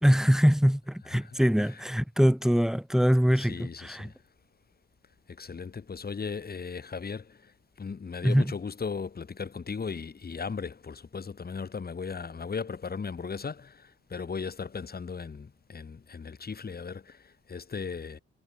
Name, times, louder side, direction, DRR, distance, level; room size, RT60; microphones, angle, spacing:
voice 1, 0.0-4.1 8.2-8.5, equal, ahead, 2.6 m, -23 dB
voice 2, 1.1-1.7 3.4-4.1 5.3-18.2, left 5 dB, 30° left, 2.2 m, -37 dB
cardioid pair, 90°, 30 cm